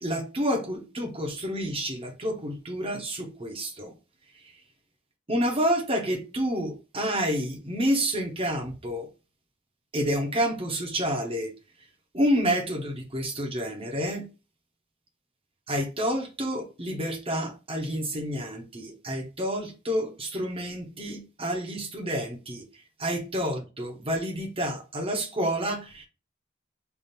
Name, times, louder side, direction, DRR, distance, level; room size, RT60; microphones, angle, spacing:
voice 1, 0.0-3.9 4.4-4.5 5.3-9.1 9.9-11.5 12.1-14.2 15.7-22.6 23.0-26.0, equal, 30° right, 1.1 m, -29 dB
3.5 x 2.7 x 4.2 m
head